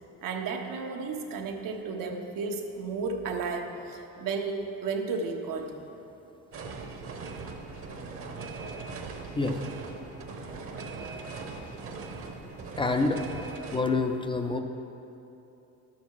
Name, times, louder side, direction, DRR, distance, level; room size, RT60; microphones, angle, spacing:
voice 1, 0.2-5.7 6.6-7.0, right 4 dB, 75° right, 3 dB, 1.2 m, -33 dB
sound 1, 6.5-13.8, right 4 dB, 40° right, 1.0 m, -40 dB
voice 2, 12.8-13.2 13.7-14.6, left 3 dB, 15° left, 5 dB, 0.4 m, -27 dB
11.5 x 7.3 x 4.8 m, 2.8 s
cardioid pair, 140°, 34 cm